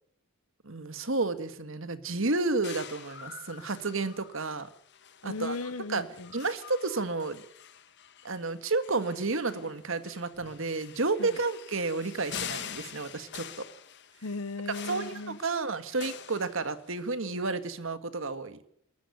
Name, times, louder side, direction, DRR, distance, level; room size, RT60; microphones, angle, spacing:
voice 1, 0.6-4.7 5.2-5.6 5.9-6.0 6.3-7.4 8.2-13.6 14.9-18.7, right 3 dB, 60° right, 12 dB, 1.7 m, -31 dB
sound 1, 2.6-17.1, left 9 dB, 50° left, 1.5 m, -45 dB
voice 2, 5.2-6.3 11.2-11.4 14.2-15.4, left 3 dB, 75° left, 15 dB, 0.9 m, -36 dB
23.0 x 13.5 x 9.8 m, 0.68 s
head